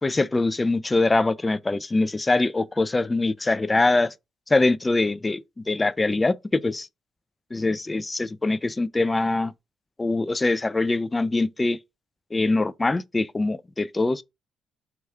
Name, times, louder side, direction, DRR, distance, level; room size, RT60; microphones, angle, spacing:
voice 1, 0.0-4.1 4.5-6.9 7.5-9.5 10.0-11.8 12.3-14.2, left 2 dB, 20° left, 0.4 m, -23 dB
4.8 x 2.3 x 4.1 m
cardioid pair, 90°, 0 cm